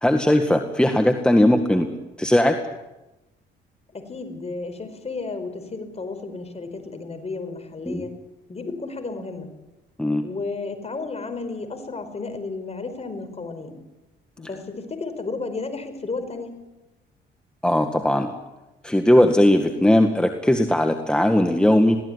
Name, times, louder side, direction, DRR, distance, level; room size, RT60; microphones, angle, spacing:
voice 1, 0.0-1.9 2.2-2.6 7.9-8.0 10.0-10.3 17.6-18.3 18.8-22.0, left 1 dB, 5° left, 5 dB, 1.9 m, -18 dB
voice 2, 3.9-8.1 8.5-9.5 10.2-13.8 14.4-16.6, left 3 dB, 30° left, 8 dB, 4.9 m, -33 dB
22.0 x 17.0 x 10.0 m, 1.0 s
cardioid pair, 90°, 20 cm